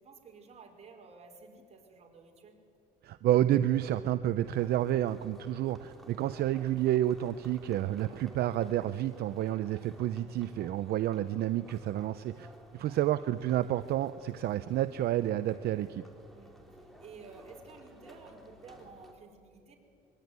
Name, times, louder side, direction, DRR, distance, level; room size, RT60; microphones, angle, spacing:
voice 1, 0.0-2.6 12.8-13.2 16.3-19.8, right 4 dB, 40° right, 1 dB, 5.2 m, -53 dB
voice 2, 3.0-12.5 12.7-16.0, right 12 dB, 70° right, 12 dB, 0.7 m, -30 dB
sound 1, 4.4-19.1, equal, ahead, 3.7 m, -55 dB
24.5 x 22.5 x 9.6 m, 2.6 s
cardioid pair, 110°, 17 cm